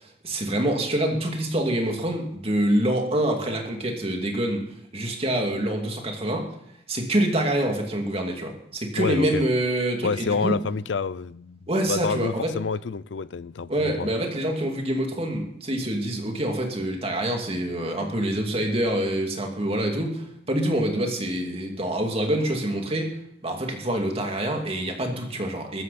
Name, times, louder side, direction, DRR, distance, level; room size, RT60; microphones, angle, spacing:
voice 1, 0.0-4.6 4.9-6.5 6.9-10.6 11.7-12.5 13.7-23.1 23.4-25.8, right 1 dB, 35° right, 2.5 m, -26 dB
voice 2, 9.0-9.4 10.0-11.6 11.9-14.1, left 5 dB, 80° left, 0.5 m, -28 dB
15.0 x 13.5 x 4.2 m
head